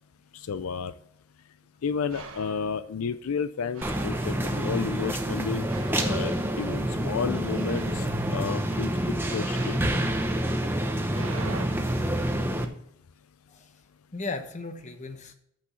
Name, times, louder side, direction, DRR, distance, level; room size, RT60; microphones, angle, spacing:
voice 1, 0.3-0.9 1.8-5.6 6.0-8.1 8.3-8.9 9.3-9.8, left 6 dB, 80° left, 12 dB, 0.4 m, -31 dB
sound 1, 2.1-2.8 3.7-7.0 7.5-8.2 9.3-11.7, right 4 dB, 75° right, 1.2 m, -44 dB
sound 2, 3.8-12.7, right 1 dB, 10° right, 0.8 m, -28 dB
voice 2, 10.3-11.4 13.5-13.8 14.1-15.3, left 3 dB, 35° left, 7 dB, 1.0 m, -39 dB
8.5 x 6.1 x 7.0 m, 0.72 s
head